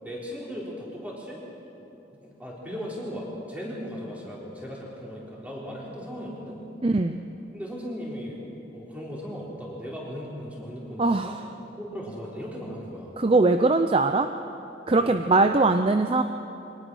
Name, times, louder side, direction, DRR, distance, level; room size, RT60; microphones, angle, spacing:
voice 1, 0.0-1.4 2.2-6.6 7.5-8.4 8.7-11.3 11.8-13.2 15.0-15.2, equal, 10° right, -5 dB, 4.1 m, -37 dB
voice 2, 6.8-7.2 11.0-11.4 13.2-14.3 14.9-16.2, right 3 dB, 30° right, 7 dB, 0.5 m, -21 dB
23.5 x 18.5 x 6.3 m, 3.0 s
head